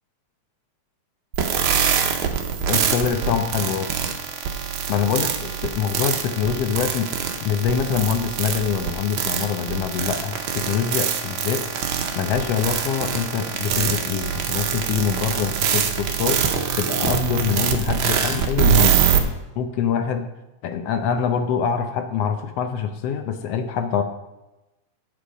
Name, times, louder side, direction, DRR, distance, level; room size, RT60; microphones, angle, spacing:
sound 1, 1.3-19.2, right 8 dB, 70° right, 1.3 m, -24 dB
voice 1, 2.7-3.9 4.9-7.1 7.4-11.6 12.1-19.1 19.6-20.3 20.6-24.0, left 7 dB, 70° left, 6 dB, 1.6 m, -24 dB
8.3 x 7.7 x 5.0 m, 1.0 s
omnidirectional pair, 3.4 m